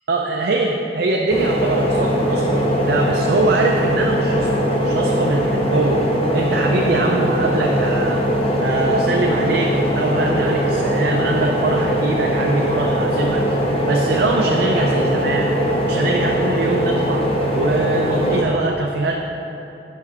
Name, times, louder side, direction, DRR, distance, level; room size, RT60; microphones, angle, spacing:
voice 1, 0.1-6.0 6.3-8.2 8.6-13.4 13.9-15.5 15.8-17.3 17.5-19.2, right 2 dB, 70° right, 0 dB, 0.4 m, -22 dB
sound 1, 1.3-18.4, equal, 30° left, 0.6 m, -20 dB
5.4 x 4.8 x 6.1 m, 2.9 s
head